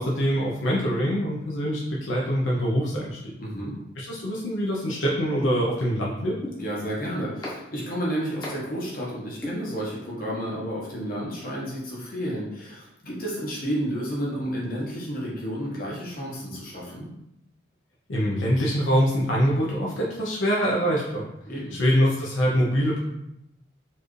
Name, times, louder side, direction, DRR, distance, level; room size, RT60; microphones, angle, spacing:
voice 1, 0.0-3.3 4.0-6.4 18.1-21.3 21.7-23.0, equal, 75° left, -4 dB, 0.7 m, -24 dB
voice 2, 3.4-3.8 6.5-17.1 21.5-21.8, equal, 45° left, -4 dB, 1.1 m, -31 dB
sound 1, 5.4-5.5 6.4-6.5 7.4-7.5 8.4-8.5 9.4-9.5, left 1 dB, 15° left, 0.9 m, -31 dB
4.4 x 2.5 x 3.1 m, 0.84 s
head